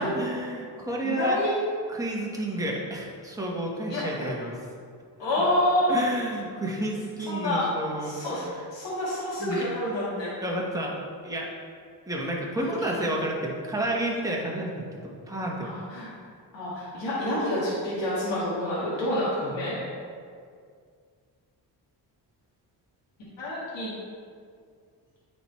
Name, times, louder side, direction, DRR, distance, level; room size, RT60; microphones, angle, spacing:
voice 1, 0.0-1.4 1.9-4.6 5.9-8.6 9.4-9.6 10.4-11.0 11.2-11.5 12.1-15.7 19.4-19.6, right 1 dB, 10° right, -3 dB, 1.4 m, -30 dB
voice 2, 1.0-1.6 3.9-4.3 5.2-6.0 7.3-7.6 8.0-8.4 8.7-10.3 12.5-13.0 15.6-16.1 16.5-19.8 23.4-23.9, left 1 dB, 75° left, -8 dB, 1.8 m, -28 dB
9.1 x 4.5 x 3.2 m, 2.1 s
cardioid pair, 65°, 44 cm